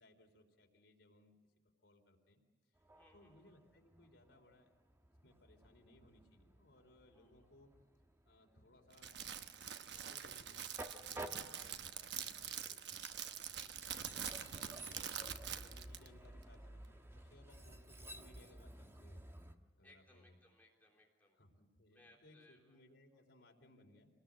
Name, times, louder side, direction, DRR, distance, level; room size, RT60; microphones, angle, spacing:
voice 1, 0.0-1.4 1.8-2.4 3.1-4.7 5.2-7.7 8.3-9.1 9.8-13.4 14.1-19.4 19.8-20.4 21.4-24.1, left 1 dB, 90° left, 2 dB, 3.8 m, -66 dB
Train, 2.8-19.5, right 1 dB, 15° right, 1.3 m, -54 dB
voice 2, 3.0-3.6 7.1-7.3 19.8-21.4 21.9-22.8, left 1 dB, 10° left, -2 dB, 3.5 m, -67 dB
Crackle, 8.9-16.1, right 9 dB, 75° right, 1.0 m, -45 dB
27.5 x 19.5 x 7.7 m, 1.3 s
head